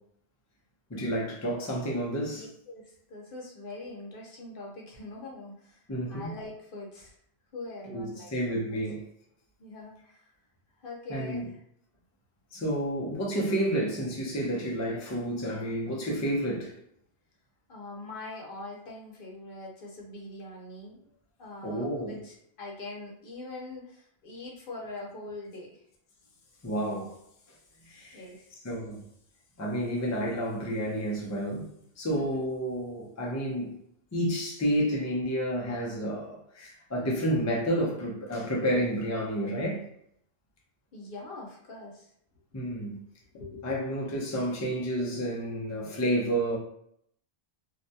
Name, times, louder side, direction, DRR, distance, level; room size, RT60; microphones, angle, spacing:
voice 1, 0.9-2.4 5.9-6.3 7.9-9.0 11.1-11.5 12.5-16.7 21.6-22.2 26.6-27.2 27.9-28.3 28.6-29.0 29.6-31.7 32.0-33.8 34.1-39.8 42.5-43.0 43.6-46.6, equal, 25° left, 0.4 m, -30 dB
voice 2, 2.3-5.8 6.1-7.2 7.5-8.3 9.6-10.2 10.8-11.6 17.7-21.1 21.4-25.8 28.1-28.5 32.1-32.4 40.9-42.1 42.8-43.0 43.3-44.1, left 2 dB, 55° left, 0.8 m, -43 dB
2.6 x 2.2 x 2.6 m
omnidirectional pair, 1.1 m